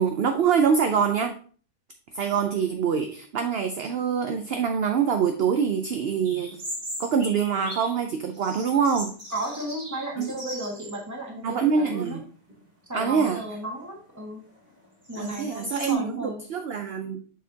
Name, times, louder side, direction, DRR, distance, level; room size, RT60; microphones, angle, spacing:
voice 1, 0.0-1.4 2.1-6.6 7.0-9.1 10.2-10.3 11.4-12.2 12.9-13.4 15.2-17.2, right 6 dB, 55° right, 6 dB, 0.7 m, -25 dB
sound 1, 6.2-8.0 8.3-11.1 11.4-11.5 12.3-12.6 13.1-15.9, equal, 40° right, 2.6 m, -40 dB
voice 2, 9.3-12.2 12.9-14.5 15.1-16.4, right 1 dB, 10° right, 0 dB, 1.5 m, -34 dB
7.3 x 6.4 x 2.8 m, 0.42 s
omnidirectional pair, 1.5 m